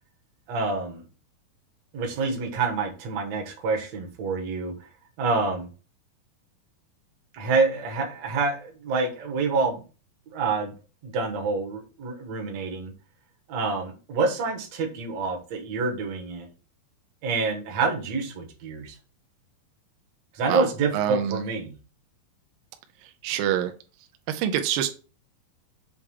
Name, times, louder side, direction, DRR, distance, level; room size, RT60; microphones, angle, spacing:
voice 1, 0.5-1.0 1.9-4.8 5.2-5.7 7.3-9.8 10.3-10.7 11.0-12.9 13.5-16.5 17.2-19.0 20.3-21.7, right 4 dB, 60° right, 2 dB, 2.0 m, -27 dB
voice 2, 20.9-21.4 23.2-23.7 24.3-24.9, right 10 dB, 80° right, 6 dB, 2.3 m, -25 dB
7.2 x 3.3 x 4.8 m, 0.35 s
omnidirectional pair, 4.5 m